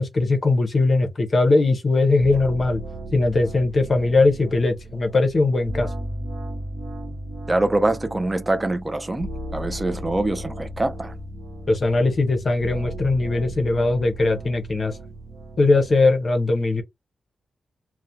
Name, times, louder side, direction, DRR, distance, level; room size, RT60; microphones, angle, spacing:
voice 1, 0.0-2.8 3.1-5.9 11.7-14.9 15.6-16.8, left 3 dB, 35° left, 0.6 m, -20 dB
sound 1, 2.2-16.0, right 1 dB, 60° right, 0.8 m, -35 dB
voice 2, 7.5-11.1, right 2 dB, 15° right, 0.3 m, -24 dB
2.4 x 2.0 x 2.7 m
wide cardioid pair, 170°, 0 cm